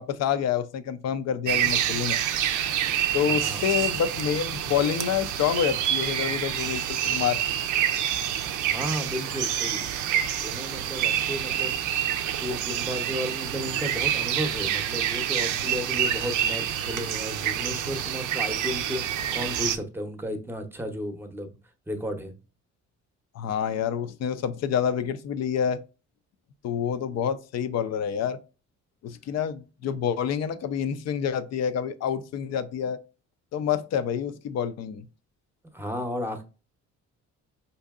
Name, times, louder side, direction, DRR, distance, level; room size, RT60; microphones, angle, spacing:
voice 1, 0.0-2.2 3.1-7.4 23.4-25.8 26.6-28.4 29.0-33.0 33.5-35.0, left 8 dB, 60° left, 0.5 m, -27 dB
sound 1, 1.5-19.8, right 10 dB, 85° right, 0.5 m, -27 dB
voice 2, 8.6-11.8 12.4-21.5 21.9-22.3 35.7-36.4, equal, 5° right, 0.7 m, -33 dB
4.4 x 2.7 x 2.3 m
cardioid pair, 90°, 30 cm